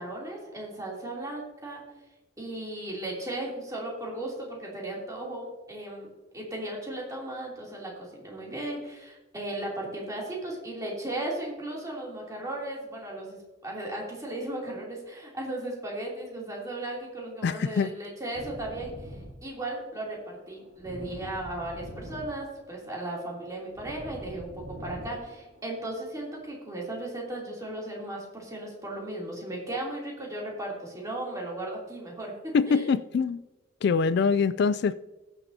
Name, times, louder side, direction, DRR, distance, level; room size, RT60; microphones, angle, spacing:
voice 1, 0.0-1.8 2.4-6.1 6.3-7.9 8.2-18.9 19.4-24.5 24.8-32.3 32.6-32.9, right 1 dB, 20° right, 3.0 m, -36 dB
voice 2, 17.4-17.9 32.5-33.5 33.8-35.0, left 5 dB, 60° left, 0.3 m, -24 dB
sound 1, 18.3-26.4, equal, 55° right, 3.3 m, -45 dB
20.5 x 7.0 x 2.8 m
head